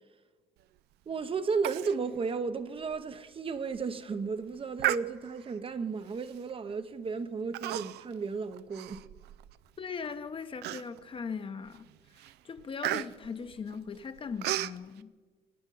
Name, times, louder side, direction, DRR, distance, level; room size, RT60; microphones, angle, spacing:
voice 1, 1.1-9.0, right 5 dB, 30° right, 0.8 m, -34 dB
Human voice, 1.6-2.0 2.3-2.4 2.9-3.0 3.6-3.8 4.8-5.5 6.3-6.5 7.5-8.1 8.5-9.6 10.0-10.1 10.6-11.2 11.7-11.9 12.2-14.8, right 15 dB, 80° right, 0.5 m, -34 dB
voice 2, 9.8-11.9 12.2-15.1, left 5 dB, 30° left, 0.9 m, -39 dB
24.5 x 9.5 x 5.5 m
cardioid pair, 110°, 17 cm